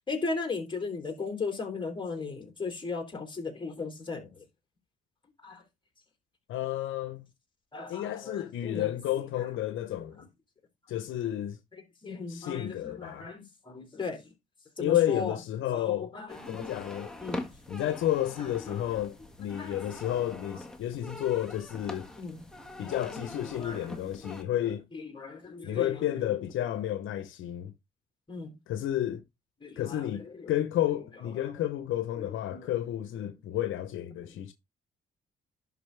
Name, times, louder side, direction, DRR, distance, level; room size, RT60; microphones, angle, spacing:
voice 1, 0.0-4.4 5.4-5.6 7.7-8.9 9.2-9.3 11.7-14.2 14.8-15.4 15.7-16.7 17.2-17.5 18.6-18.9 19.5-20.1 21.0-21.2 22.2-22.4 22.9-24.3 24.9-26.4 28.3-28.5 29.6-30.5 31.4-31.5 32.2-32.7 34.2-34.3, left 4 dB, 25° left, 3.3 m, -37 dB
voice 2, 6.5-7.3 7.9-10.2 10.9-11.6 12.3-13.3 14.8-16.1 16.5-17.1 17.7-22.1 22.8-24.9 25.6-27.7 28.7-29.2 29.8-34.5, left 12 dB, 80° left, 0.8 m, -31 dB
sound 1, 16.3-24.4, left 1 dB, 5° left, 1.5 m, -43 dB
11.0 x 4.0 x 3.4 m
cardioid pair, 90°, 20 cm